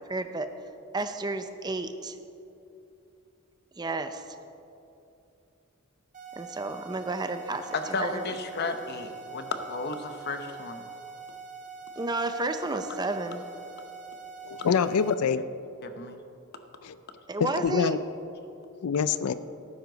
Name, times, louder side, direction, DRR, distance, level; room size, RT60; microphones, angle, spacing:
voice 1, 0.1-0.5 0.9-2.2 3.8-4.2 6.4-7.6 8.0-8.2 12.0-13.4 17.3-18.0, right 2 dB, 20° right, 8 dB, 0.5 m, -31 dB
sound 1, 6.1-15.2, right 5 dB, 35° right, 1.2 m, -44 dB
voice 2, 7.7-10.9 15.8-16.2, left 3 dB, 45° left, 7 dB, 0.9 m, -33 dB
voice 3, 14.4-15.4 16.8-17.0 17.4-18.0 18.8-19.3, left 6 dB, 80° left, 14 dB, 0.4 m, -25 dB
17.0 x 9.7 x 4.0 m, 2.8 s
head